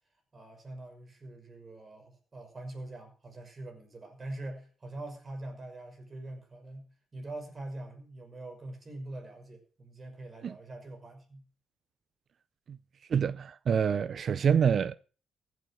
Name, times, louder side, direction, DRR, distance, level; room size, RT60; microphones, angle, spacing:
voice 1, 0.3-11.4, right 2 dB, 30° right, 5.8 m, -44 dB
voice 2, 13.1-15.0, right 7 dB, 55° right, 0.5 m, -26 dB
15.5 x 8.4 x 6.4 m
cardioid pair, 90°, 0 cm